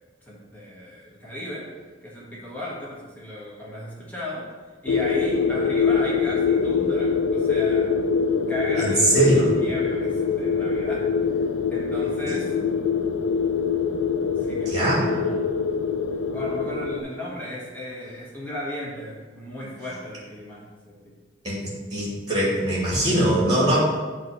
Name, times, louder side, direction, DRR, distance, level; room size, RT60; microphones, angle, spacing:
voice 1, 0.2-1.7 2.0-4.4 4.8-7.9 8.5-11.0 11.7-12.5 14.4-15.7 16.3-21.1, left 1 dB, 10° left, -7 dB, 1.5 m, -35 dB
sound 1, 4.9-17.0, left 5 dB, 85° left, 0.5 m, -24 dB
voice 2, 8.8-9.5 14.7-15.1 21.4-21.6 21.9-23.8, right 1 dB, 20° right, -6 dB, 2.4 m, -21 dB
8.2 x 3.2 x 5.9 m, 1.3 s
head